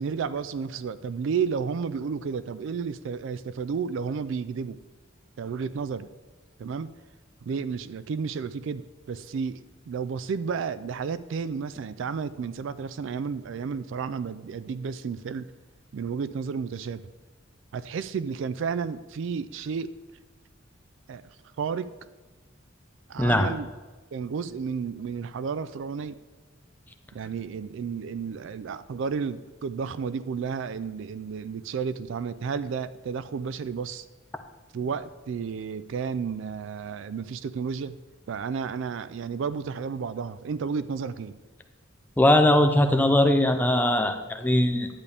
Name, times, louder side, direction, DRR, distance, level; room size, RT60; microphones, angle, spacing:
voice 1, 0.0-4.8 5.4-6.1 6.6-6.9 7.4-15.5 15.9-17.0 17.7-19.9 21.1-21.2 21.6-21.9 23.1-23.7 24.1-26.2 27.1-34.0 34.7-38.0 38.3-41.3, right 6 dB, 65° right, 14 dB, 0.3 m, -32 dB
voice 2, 23.2-23.5 42.2-44.9, left 1 dB, 10° left, 6 dB, 0.6 m, -20 dB
11.0 x 8.4 x 3.4 m, 1.3 s
head